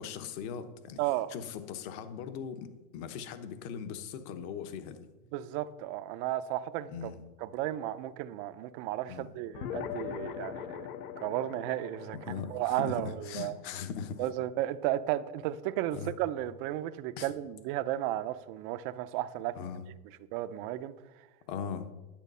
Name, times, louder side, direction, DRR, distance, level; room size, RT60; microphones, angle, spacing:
voice 1, 0.0-1.0 1.3-5.1 6.9-7.2 9.1-9.3 12.3-14.3 15.9-16.1 17.2-17.3 19.5-19.8 21.5-21.9, left 7 dB, 45° left, 1.1 m, -39 dB
voice 2, 1.0-1.3 5.3-7.1 7.4-10.9 11.2-13.6 14.2-19.6 20.3-20.9, right 14 dB, 40° right, 0.5 m, -34 dB
sound 1, 9.5-14.4, left 9 dB, 70° left, 0.9 m, -41 dB
10.5 x 8.3 x 5.5 m
supercardioid pair, 145°, 45 cm